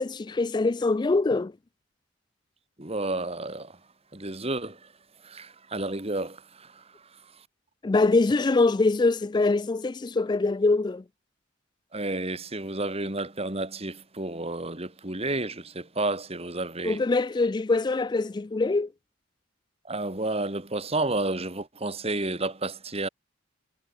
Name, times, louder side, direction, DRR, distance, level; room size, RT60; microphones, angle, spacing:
voice 1, 0.0-1.5 7.8-11.0 16.8-18.9, left 3 dB, 20° left, 0.3 m, -23 dB
voice 2, 2.8-3.7 4.1-4.8 5.2-6.7 11.9-17.0 19.9-23.1, right 2 dB, 30° right, 2.7 m, -31 dB
head